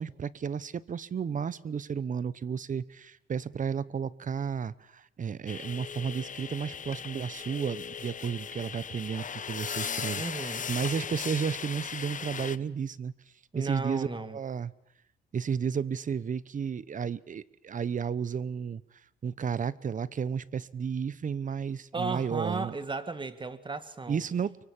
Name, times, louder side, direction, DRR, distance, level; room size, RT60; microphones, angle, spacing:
voice 1, 0.0-13.1 13.5-14.1 14.3-14.7 15.3-18.8 19.2-22.7 24.1-24.6, right 7 dB, 40° right, 0.9 m, -33 dB
sound 1, 5.5-12.6, left 7 dB, 40° left, 0.9 m, -37 dB
voice 2, 10.2-10.7 13.5-14.4 21.9-24.2, right 3 dB, 25° right, 1.8 m, -35 dB
24.0 x 24.0 x 7.3 m
cardioid pair, 90°, 20 cm